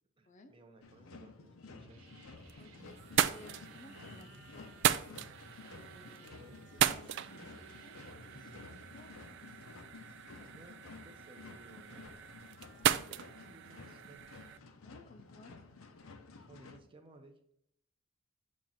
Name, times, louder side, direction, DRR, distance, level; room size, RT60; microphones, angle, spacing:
voice 1, 0.2-2.1 6.3-6.6 10.4-12.3 13.1-14.2 16.3-17.4, right 2 dB, 25° right, 3 dB, 0.8 m, -59 dB
sound 1, 0.8-16.8, left 3 dB, 85° left, 0.7 m, -53 dB
sound 2, 1.8-9.1, right 2 dB, 85° right, 0.8 m, -59 dB
sound 3, 2.1-2.6 3.0-14.6, right 10 dB, 60° right, 0.3 m, -37 dB
voice 2, 2.6-5.0 5.6-6.3 6.7-9.1 11.7-11.9 14.8-15.6, left 1 dB, 35° left, 7 dB, 0.5 m, -58 dB
7.3 x 2.5 x 5.5 m, 0.73 s
head